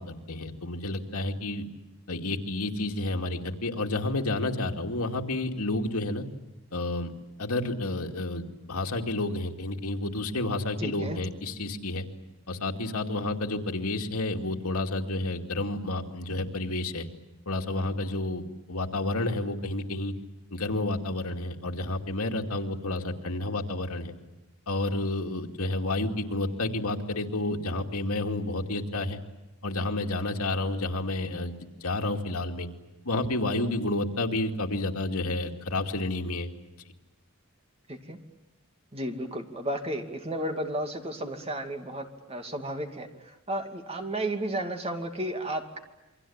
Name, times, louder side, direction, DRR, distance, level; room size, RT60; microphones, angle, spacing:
voice 1, 0.0-1.6 2.1-6.3 6.7-7.1 7.4-12.1 12.5-17.1 17.5-18.4 18.7-20.1 20.5-24.1 24.7-29.2 29.6-31.5 31.8-32.7 33.0-36.5, left 2 dB, 80° left, 3 dB, 2.5 m, -30 dB
voice 2, 10.8-11.2 37.9-38.2 38.9-45.8, right 1 dB, 25° right, 5 dB, 2.5 m, -33 dB
28.5 x 23.5 x 8.8 m, 1.0 s
head